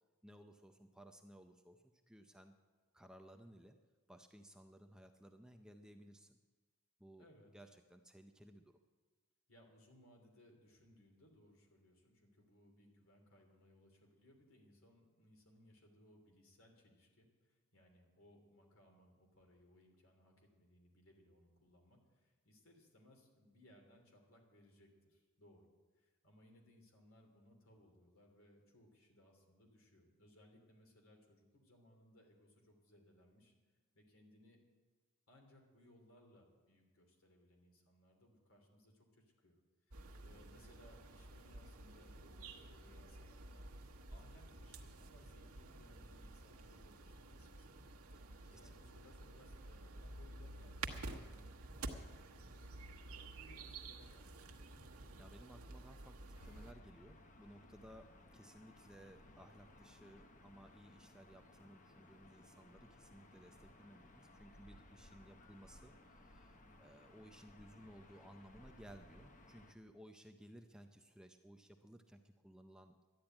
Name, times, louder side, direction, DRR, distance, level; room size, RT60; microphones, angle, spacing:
voice 1, 0.2-2.5 2.9-3.8 4.1-6.4 7.0-7.3 7.5-8.8 48.2-48.7 55.1-73.1, equal, 5° right, 5 dB, 0.5 m, -59 dB
voice 2, 7.2-7.5 9.5-33.5 33.9-34.6 35.3-39.6 39.9-43.7 44.1-47.8 48.4-54.6 66.6-66.9, left 1 dB, 65° left, 2 dB, 3.0 m, -66 dB
sound 1, 39.9-56.7, right 2 dB, 75° right, 1.2 m, -51 dB
Gull seagull / Ocean, 56.3-69.7, left 1 dB, 35° left, 0.9 m, -61 dB
12.0 x 10.0 x 8.8 m, 1.4 s
head